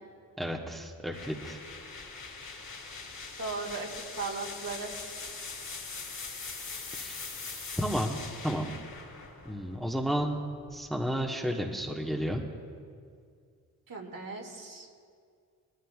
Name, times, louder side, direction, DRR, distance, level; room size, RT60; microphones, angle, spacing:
voice 1, 0.4-1.6 6.9-7.2 7.8-8.8 9.4-10.4 10.7-12.4, equal, ahead, 0 dB, 1.4 m, -32 dB
sound 1, 1.1-10.9, left 4 dB, 55° left, 3.7 m, -42 dB
voice 2, 3.4-3.9 4.2-5.0 13.9-14.9, right 4 dB, 55° right, -1 dB, 2.5 m, -37 dB
19.5 x 13.0 x 2.5 m, 2.2 s
supercardioid pair, 45°, 41 cm